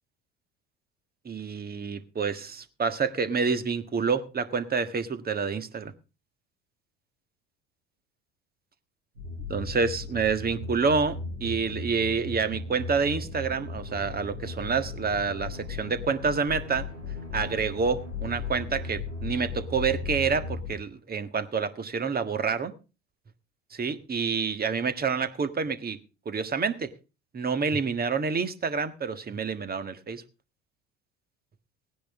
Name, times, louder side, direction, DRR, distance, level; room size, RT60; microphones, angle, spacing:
voice 1, 1.2-5.9 9.5-16.9 17.3-22.7 23.7-26.0 26.2-26.9 27.3-30.2, right 5 dB, 25° right, 10 dB, 1.6 m, -28 dB
sound 1, 9.2-20.7, left 3 dB, 80° right, 4.9 m, -36 dB
18.0 x 10.0 x 3.6 m, 0.31 s
hypercardioid pair, 65°, 35 cm